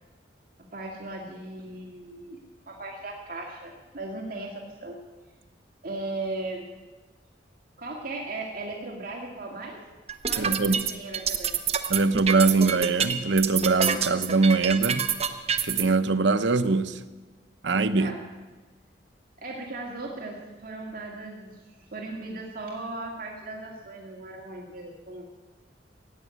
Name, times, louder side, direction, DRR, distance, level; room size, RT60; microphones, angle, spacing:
voice 1, 0.7-2.4 2.7-5.0 5.8-6.6 7.8-9.8 10.3-11.5 17.9-18.2 19.4-21.6 21.9-25.3, right 2 dB, 55° right, 2.2 m, -37 dB
sound 1, 10.1-15.8, right 7 dB, 35° right, 0.9 m, -26 dB
voice 2, 10.4-10.9 11.9-15.1 15.6-17.0 17.6-18.1, right 3 dB, 85° right, 0.8 m, -23 dB
17.0 x 8.5 x 9.3 m
head